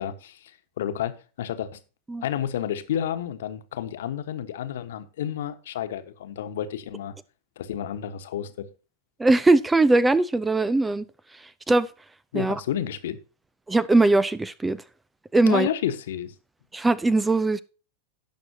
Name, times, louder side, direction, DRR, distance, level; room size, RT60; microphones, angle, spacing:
voice 1, 0.0-1.8 2.2-7.1 7.6-8.7 12.3-13.2 15.4-16.3, left 10 dB, 60° left, 1.3 m, -31 dB
voice 2, 9.2-11.0 11.7-11.9 12.3-12.6 13.7-14.8 15.3-15.7 16.7-17.6, right 2 dB, 10° right, 0.5 m, -20 dB
17.5 x 6.3 x 2.8 m
figure-of-eight pair, 90°, 0 cm